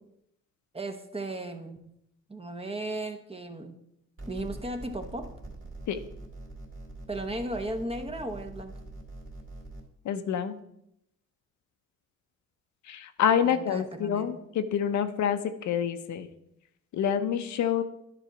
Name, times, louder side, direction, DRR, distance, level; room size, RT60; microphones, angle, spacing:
voice 1, 0.7-1.8 2.3-3.8 4.3-5.3 7.1-8.8 13.4-14.3, right 1 dB, 20° right, 7 dB, 0.9 m, -35 dB
sound 1, 4.2-9.8, right 2 dB, 40° right, 2.5 m, -43 dB
voice 2, 10.0-10.6 12.9-16.3 16.9-17.8, left 8 dB, 70° left, 9 dB, 0.7 m, -27 dB
10.0 x 4.0 x 5.9 m, 0.79 s
cardioid pair, 90°, 30 cm